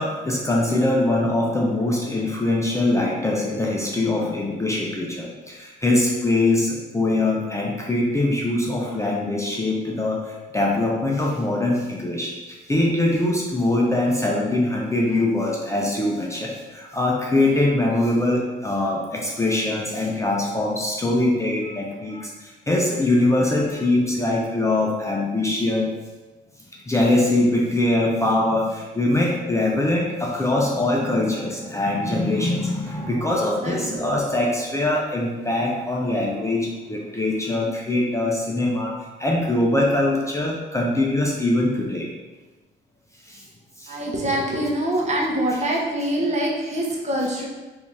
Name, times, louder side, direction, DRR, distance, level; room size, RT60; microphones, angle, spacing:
voice 1, 0.0-25.9 26.9-38.9 39.2-42.1 43.3-43.4 43.8-44.0, left 2 dB, 15° left, -2 dB, 0.5 m, -22 dB
voice 2, 33.6-34.1 43.9-47.5, right 1 dB, 35° right, -2 dB, 0.8 m, -24 dB
3.5 x 2.6 x 3.2 m, 1.2 s
cardioid pair, 90°, 20 cm